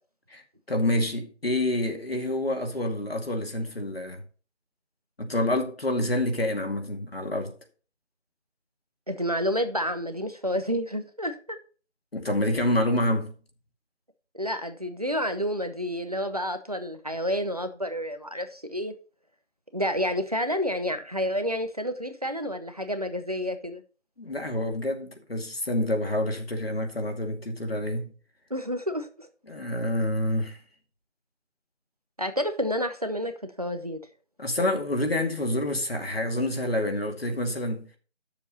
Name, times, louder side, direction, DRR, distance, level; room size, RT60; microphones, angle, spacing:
voice 1, 0.3-4.2 5.2-7.5 12.1-13.3 24.2-28.1 29.5-30.6 34.4-37.9, left 1 dB, 55° left, 2.4 m, -27 dB
voice 2, 9.1-11.6 14.3-18.9 19.7-23.8 28.5-29.3 32.2-34.0, equal, 35° right, 0.8 m, -29 dB
10.5 x 7.2 x 4.2 m
figure-of-eight pair, 175°, 36 cm